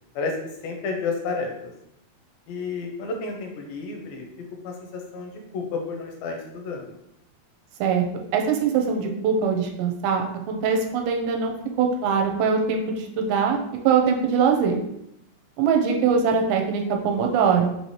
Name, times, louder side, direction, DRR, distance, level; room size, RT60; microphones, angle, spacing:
voice 1, 0.6-1.5 2.5-4.3 4.6-6.9, left 4 dB, 85° left, 2 dB, 2.4 m, -31 dB
voice 2, 8.3-13.6 13.8-14.8 15.6-17.7, right 6 dB, 85° right, 2 dB, 2.5 m, -22 dB
5.5 x 2.8 x 3.1 m, 0.79 s
omnidirectional pair, 4.3 m